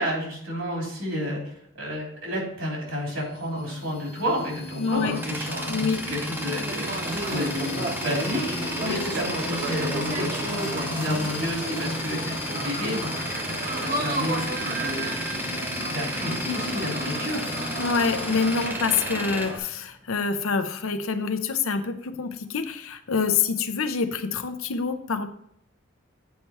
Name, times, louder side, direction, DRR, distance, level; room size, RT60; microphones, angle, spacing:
voice 1, 0.0-13.3 13.8-15.2 15.5-17.5, equal, 75° right, -2 dB, 3.3 m, -31 dB
sound 1, 2.8-18.7, left 3 dB, 30° left, 0.5 m, -36 dB
voice 2, 4.8-5.2 5.7-6.1 8.8-9.0 17.8-25.3, left 5 dB, 85° left, 9 dB, 0.7 m, -26 dB
Tools, 4.8-20.5, right 1 dB, 10° right, 0.7 m, -34 dB
sound 2, 6.6-19.6, right 2 dB, 45° right, 1.1 m, -33 dB
8.3 x 4.7 x 4.2 m, 0.71 s
head